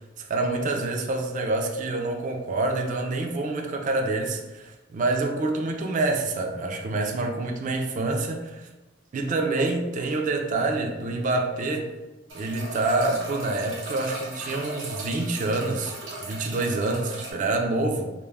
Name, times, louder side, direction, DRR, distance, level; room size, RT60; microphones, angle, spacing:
voice 1, 0.2-8.7 9.1-11.9 12.3-15.9 16.2-18.1, right 2 dB, 40° right, 0.3 m, -27 dB
sound 1, 12.3-17.3, right 1 dB, 90° right, 0.7 m, -38 dB
2.2 x 2.0 x 3.2 m
head